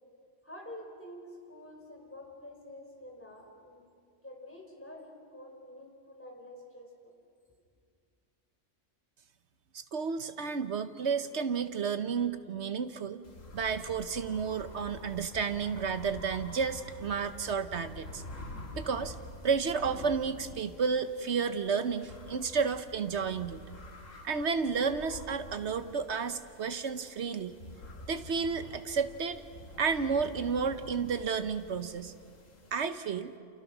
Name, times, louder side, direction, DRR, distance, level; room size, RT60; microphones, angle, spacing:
voice 1, 0.4-3.8 4.2-7.1, left 1 dB, 10° left, 0 dB, 4.5 m, -48 dB
voice 2, 9.7-13.2 13.5-18.2 18.7-19.1 19.4-23.6 24.2-27.5 28.1-29.4 29.8-32.1 32.7-33.3, right 5 dB, 65° right, 10 dB, 1.2 m, -31 dB
sound 1, 13.2-32.9, left 2 dB, 80° left, 2.3 m, -48 dB
28.5 x 28.5 x 6.1 m, 2.2 s
omnidirectional pair, 1.3 m